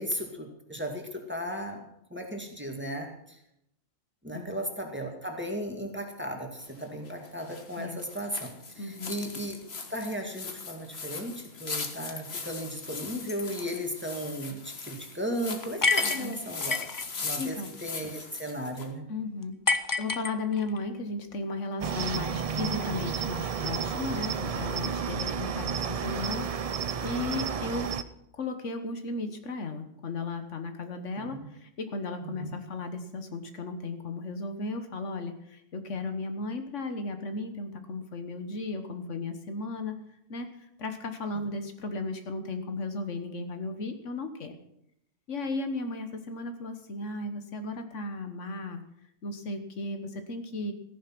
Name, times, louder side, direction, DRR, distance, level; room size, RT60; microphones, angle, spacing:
voice 1, 0.0-1.9 2.1-3.4 4.2-8.5 8.8-9.6 9.9-16.8 17.2-19.1 25.2-25.3 31.1-31.3 32.2-32.5, equal, 10° right, 2 dB, 2.0 m, -36 dB
sound 1, 6.6-18.9, left 4 dB, 55° left, 1.6 m, -39 dB
voice 2, 8.8-9.1 16.0-16.4 17.2-17.7 19.1-26.4 27.0-27.9 28.4-40.0 40.3-40.5 40.8-44.5 45.3-48.8 49.2-50.7, left 3 dB, 75° left, 7 dB, 1.6 m, -35 dB
sound 2, 15.8-17.0 19.7-20.8, left 4 dB, 30° left, 0.3 m, -27 dB
Cricket, 21.8-28.0, right 6 dB, 50° right, 0.4 m, -32 dB
14.5 x 10.5 x 5.9 m, 0.77 s
omnidirectional pair, 1.3 m